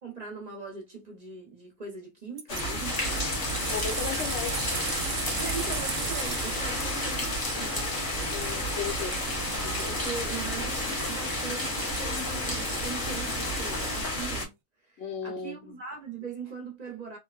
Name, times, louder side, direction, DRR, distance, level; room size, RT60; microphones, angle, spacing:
voice 1, 0.0-3.3 5.4-7.9 9.9-14.5 14.8-17.2, right 4 dB, 40° right, 0.7 m, -40 dB
sound 1, 2.4-2.6 3.1-13.3 14.0-14.1, right 6 dB, 80° right, 0.9 m, -39 dB
sound 2, 2.5-14.4, left 1 dB, 90° left, 1.3 m, -32 dB
sound 3, 2.8-14.0, left 1 dB, 25° left, 0.5 m, -36 dB
voice 2, 3.7-4.7 8.3-9.2 9.6-10.0 15.0-15.6, left 7 dB, 70° left, 0.8 m, -35 dB
3.0 x 2.0 x 2.3 m
omnidirectional pair, 1.2 m